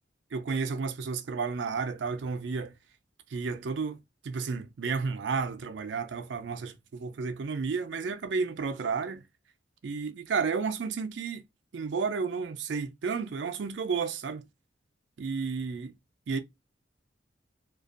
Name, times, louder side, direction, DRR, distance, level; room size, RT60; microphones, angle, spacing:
voice 1, 0.3-2.7 3.3-4.0 4.2-9.2 9.8-11.4 11.7-14.4 15.2-15.9 16.3-16.4, right 5 dB, 70° right, 0.4 m, -32 dB
2.5 x 2.2 x 2.4 m
head